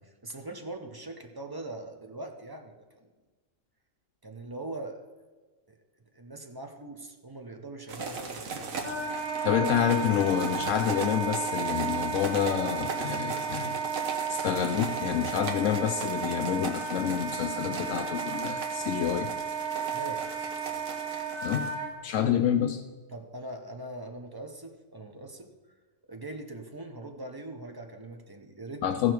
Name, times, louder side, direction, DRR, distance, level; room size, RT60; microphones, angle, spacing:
voice 1, 0.0-3.1 4.2-5.0 5.7-5.8 6.1-8.8 19.9-20.4 23.1-25.5 26.1-29.0, right 2 dB, 20° right, 4 dB, 0.6 m, -41 dB
sound 1, 7.9-21.7, right 4 dB, 80° right, 1.4 m, -39 dB
Wind instrument woodwind instrument, 8.8-21.9, right 6 dB, 10° left, 2.1 m, -33 dB
voice 2, 9.4-13.8 14.3-19.3 21.4-21.7 22.0-22.8 28.8-29.1, left 9 dB, 75° left, 8 dB, 0.9 m, -28 dB
15.0 x 6.1 x 4.6 m, 1.3 s
omnidirectional pair, 1.4 m